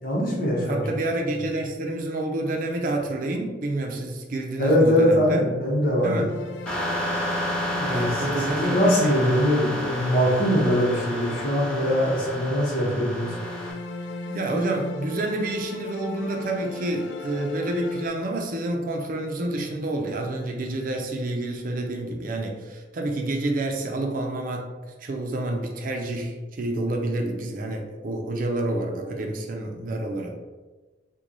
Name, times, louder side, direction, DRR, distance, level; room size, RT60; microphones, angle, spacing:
voice 1, 0.0-0.9 4.6-6.2 7.7-13.3, equal, 50° left, -3 dB, 1.0 m, -22 dB
voice 2, 0.6-5.5 6.0-6.3 7.9-9.3 14.3-24.7 25.0-30.3, right 2 dB, 50° right, 2 dB, 0.5 m, -28 dB
sound 1, 6.3-12.7 13.1-18.1, left 3 dB, 70° left, 0.3 m, -36 dB
sound 2, 6.7-13.7, equal, 5° left, 0.9 m, -31 dB
3.1 x 2.2 x 3.8 m, 1.3 s
head